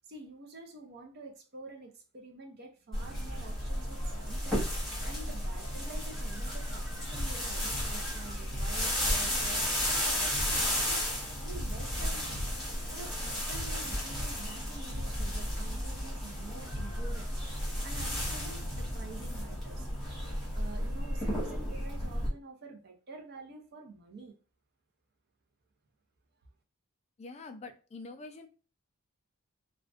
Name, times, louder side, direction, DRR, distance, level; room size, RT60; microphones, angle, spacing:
voice 1, 0.1-12.4 12.9-20.1 20.5-24.4, right 3 dB, 45° right, 3 dB, 0.5 m, -48 dB
sound 1, 2.9-22.3, equal, ahead, 1.1 m, -33 dB
voice 2, 27.2-28.5, left 3 dB, 30° left, 5 dB, 0.3 m, -45 dB
2.4 x 2.1 x 2.4 m, 0.35 s
head